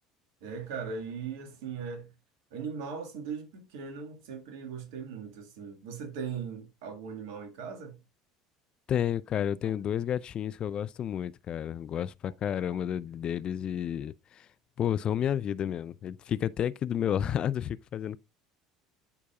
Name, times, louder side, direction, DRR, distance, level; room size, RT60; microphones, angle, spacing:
voice 1, 0.4-2.1 2.5-8.0 9.6-9.7, right 6 dB, 65° right, 1.7 m, -39 dB
voice 2, 8.9-14.5 14.8-18.2, left 9 dB, 40° left, 0.4 m, -31 dB
12.5 x 4.6 x 2.3 m
figure-of-eight pair, 65°, 2 cm